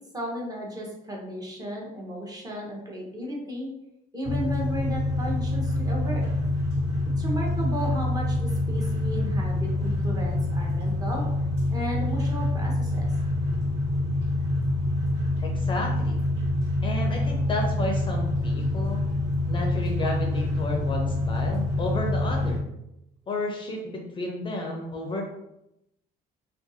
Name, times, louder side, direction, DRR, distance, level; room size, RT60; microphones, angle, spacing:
voice 1, 0.1-3.7 4.1-6.3 7.2-11.2 11.7-13.1, equal, 20° right, -2 dB, 0.7 m, -34 dB
sound 1, 4.2-22.6, left 1 dB, 40° right, 1.3 m, -26 dB
voice 2, 15.4-16.2 16.8-19.0 19.5-22.7 23.3-25.2, left 2 dB, 30° left, 1 dB, 0.4 m, -32 dB
2.5 x 2.3 x 2.6 m, 0.85 s
cardioid pair, 110°, 17 cm